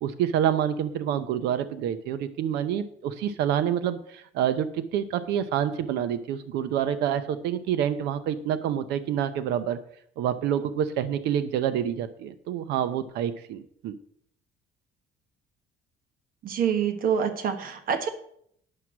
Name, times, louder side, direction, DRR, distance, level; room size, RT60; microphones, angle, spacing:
voice 1, 0.0-9.8 10.2-13.9, right 9 dB, 85° right, 12 dB, 0.7 m, -27 dB
voice 2, 16.4-18.1, right 7 dB, 60° right, 9 dB, 1.3 m, -26 dB
9.8 x 6.0 x 6.1 m, 0.67 s
cardioid pair, 110°, 17 cm